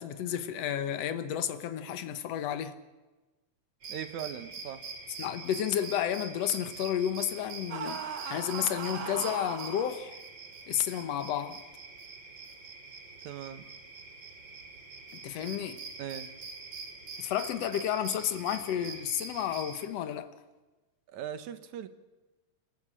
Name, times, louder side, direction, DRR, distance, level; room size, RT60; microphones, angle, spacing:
voice 1, 0.0-2.8 5.2-10.2 10.7-11.6 15.1-15.8 17.2-20.3, left 10 dB, 65° left, 2.2 m, -32 dB
sound 1, 3.8-19.9, right 4 dB, 40° right, 3.3 m, -45 dB
voice 2, 3.9-4.8 13.2-13.6 16.0-16.3 21.1-21.9, right 9 dB, 85° right, 2.6 m, -39 dB
sound 2, 7.7-9.9, right 7 dB, 55° right, 1.6 m, -38 dB
28.0 x 14.5 x 8.9 m
omnidirectional pair, 3.3 m